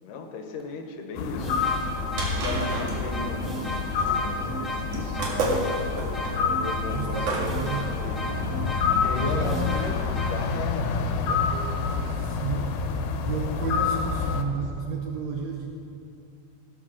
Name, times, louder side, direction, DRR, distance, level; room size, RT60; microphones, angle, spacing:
voice 1, 0.0-1.6 2.2-5.5 6.5-8.4 9.0-12.0, left 4 dB, 70° left, 4 dB, 2.3 m, -37 dB
sound 1, 1.2-14.4, left 5 dB, 90° left, 2.7 m, -28 dB
sound 2, 1.2-10.3, left 1 dB, ahead, 0.7 m, -33 dB
sound 3, 1.9-7.7, right 2 dB, 60° right, 3.3 m, -31 dB
voice 2, 6.9-8.0 9.2-9.9 12.1-12.9 13.2-15.8, right 5 dB, 85° right, 1 dB, 1.5 m, -32 dB
18.0 x 6.6 x 6.2 m, 2.7 s
omnidirectional pair, 4.3 m